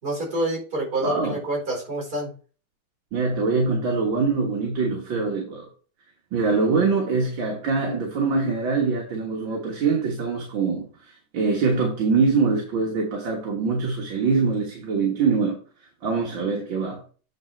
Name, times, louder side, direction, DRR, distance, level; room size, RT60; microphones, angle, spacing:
voice 1, 0.0-2.3, right 1 dB, 45° right, 4.6 m, -27 dB
voice 2, 1.0-1.4 3.1-5.7 6.3-15.6 16.0-17.0, right 4 dB, 65° right, 2.2 m, -24 dB
9.1 x 4.1 x 4.4 m
omnidirectional pair, 2.3 m